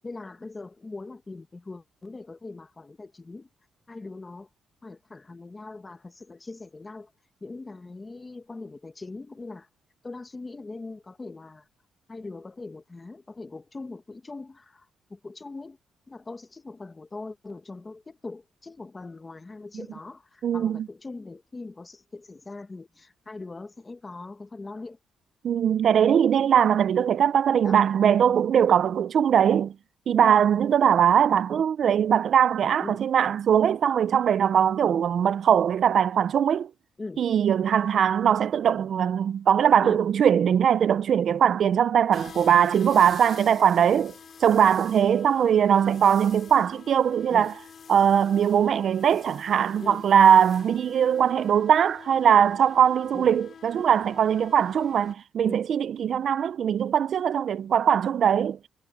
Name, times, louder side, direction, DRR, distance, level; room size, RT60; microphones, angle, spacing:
voice 1, 0.0-3.5 3.9-4.5 4.8-7.1 7.4-9.7 10.0-11.7 12.1-15.8 16.1-25.0 27.6-27.8 32.8-33.1 37.0-37.3 39.8-40.0 47.3-47.5 49.8-50.1 53.1-53.3 55.4-55.7, left 3 dB, 20° left, 1.3 m, -41 dB
voice 2, 20.4-20.9 25.4-29.7 30.1-36.7 37.2-44.1 44.4-47.5 47.9-58.6, right 8 dB, 55° right, 0.4 m, -21 dB
sound 1, 42.1-55.1, left 6 dB, 45° left, 2.6 m, -47 dB
cardioid pair, 135°, 0 cm